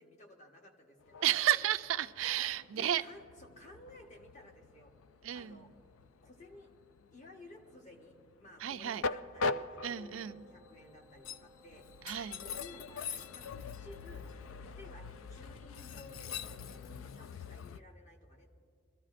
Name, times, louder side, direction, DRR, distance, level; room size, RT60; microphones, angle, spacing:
voice 1, 0.0-1.4 2.4-4.9 5.3-5.7 6.2-6.7 7.1-12.1 12.4-14.3 14.6-18.5, left 2 dB, 40° left, 2 dB, 1.3 m, -55 dB
Train, 1.0-17.8, left 4 dB, 85° left, 0.4 m, -43 dB
voice 2, 1.2-3.0 5.2-5.7 8.6-9.0 9.8-10.4 12.1-12.4, right 11 dB, 80° right, 12 dB, 0.4 m, -32 dB
Wind instrument woodwind instrument, 9.7-17.0, right 2 dB, 20° left, 1.4 m, -64 dB
25.0 x 14.0 x 2.5 m, 2.4 s
head